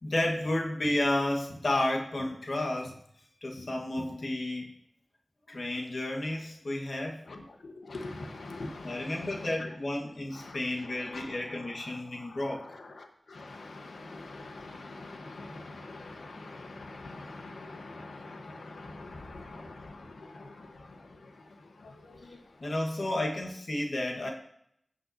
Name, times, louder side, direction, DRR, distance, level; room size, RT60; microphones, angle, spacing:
voice 1, 0.0-3.0 3.4-4.7 5.5-7.2 8.8-12.6 22.6-24.3, left 1 dB, 65° left, 1.4 m, -31 dB
voice 2, 7.3-9.7 10.3-22.7, left 2 dB, 90° left, 1.1 m, -45 dB
16.0 x 5.7 x 2.7 m
cardioid pair, 50°, 0 cm